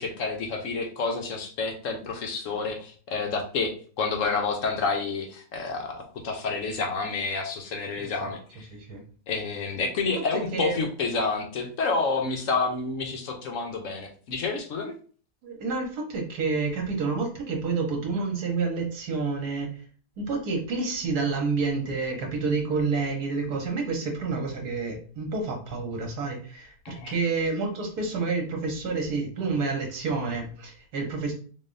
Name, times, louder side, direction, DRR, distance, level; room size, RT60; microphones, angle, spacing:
voice 1, 0.0-8.4 9.3-14.9 26.8-27.1, left 4 dB, 65° left, 3 dB, 1.0 m, -29 dB
voice 2, 8.0-8.4 8.7-9.0 10.3-10.8 15.4-19.8 20.2-31.3, right 4 dB, 85° right, 2 dB, 1.6 m, -29 dB
3.8 x 3.5 x 2.6 m, 0.41 s
omnidirectional pair, 1.6 m